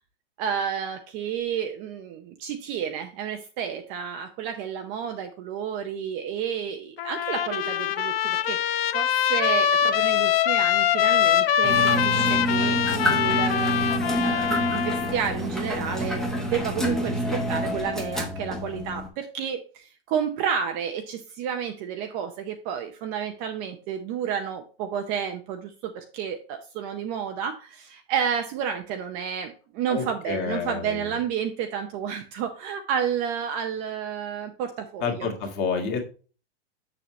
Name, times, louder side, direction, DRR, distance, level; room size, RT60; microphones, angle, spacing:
voice 1, 0.4-8.6 8.9-13.8 14.2-35.3, right 8 dB, 25° right, 5 dB, 0.6 m, -31 dB
Trumpet, 7.0-15.2, left 10 dB, 60° left, 0.8 m, -23 dB
sound 1, 11.6-19.1, equal, ahead, 0.9 m, -27 dB
voice 2, 29.9-31.2 35.0-36.0, left 5 dB, 30° left, 3 dB, 1.9 m, -29 dB
7.2 x 6.8 x 3.0 m, 0.37 s
supercardioid pair, 160°, 33 cm